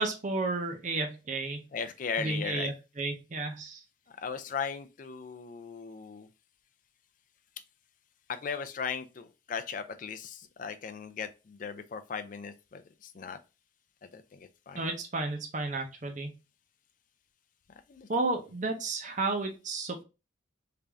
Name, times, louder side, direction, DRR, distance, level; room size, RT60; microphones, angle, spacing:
voice 1, 0.0-1.6 2.2-3.8 14.7-16.3 18.1-20.0, right 3 dB, 40° right, 0.6 m, -32 dB
voice 2, 1.7-2.7 4.2-6.3 8.3-13.4 14.0-14.9 17.9-18.1, left 6 dB, 40° left, 0.4 m, -37 dB
3.3 x 2.6 x 3.3 m
head